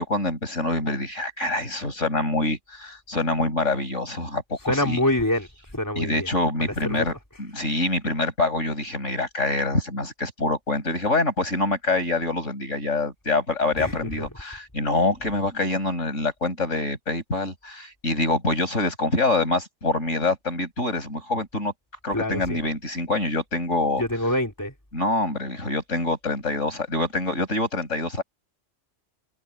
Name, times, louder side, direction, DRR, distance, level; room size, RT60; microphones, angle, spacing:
voice 1, 0.0-5.0 6.0-21.7 22.0-24.0 24.9-28.2, left 2 dB, 85° left, 7.9 m, -25 dB
voice 2, 4.7-5.5 5.7-6.3 6.8-7.0 13.8-14.2 22.1-22.6 24.0-24.7, left 1 dB, 15° left, 3.9 m, -25 dB
omnidirectional pair, 1.3 m